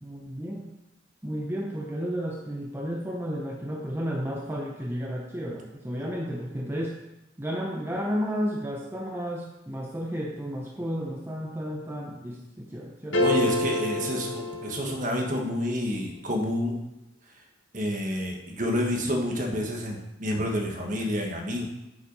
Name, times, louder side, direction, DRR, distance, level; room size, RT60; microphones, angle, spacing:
voice 1, 0.0-0.7 1.2-7.0 7.4-13.2 14.0-14.1, equal, 10° right, -1 dB, 0.7 m, -32 dB
sound 1, 13.1-15.4, left 2 dB, 75° left, 1.3 m, -27 dB
voice 2, 13.1-16.8 17.7-21.6, equal, 40° right, 1 dB, 1.4 m, -29 dB
8.1 x 5.7 x 5.4 m, 0.91 s
head